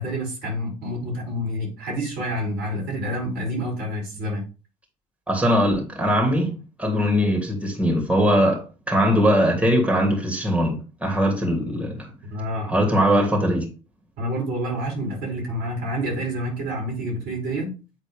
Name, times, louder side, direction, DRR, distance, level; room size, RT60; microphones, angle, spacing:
voice 1, 0.0-4.4 12.3-12.8 14.2-17.7, equal, 70° right, 3.4 m, -28 dB
voice 2, 5.3-6.5 6.8-12.1 12.7-13.7, equal, 5° right, 2.9 m, -21 dB
8.3 x 3.9 x 3.9 m
hypercardioid pair, 55°, 17 cm